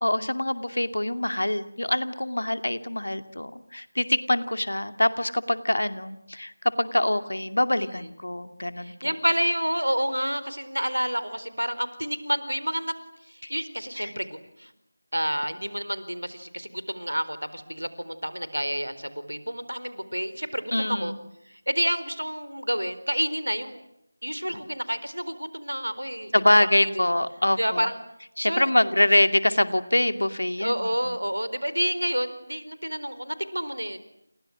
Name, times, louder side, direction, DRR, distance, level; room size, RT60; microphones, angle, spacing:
voice 1, 0.0-9.1 13.4-13.5 14.0-14.1 20.7-21.2 24.5-24.6 26.3-27.9 28.4-31.2, left 1 dB, 70° left, 10 dB, 2.4 m, -24 dB
voice 2, 8.8-12.9 13.5-14.3 14.6-14.7 15.1-21.1 21.7-23.8 24.2-26.3 26.8-26.9 27.6-28.0 28.4-28.7 30.6-34.0, equal, 85° right, 13 dB, 4.3 m, -29 dB
30.0 x 28.5 x 6.3 m, 0.81 s
figure-of-eight pair, 165°, 0 cm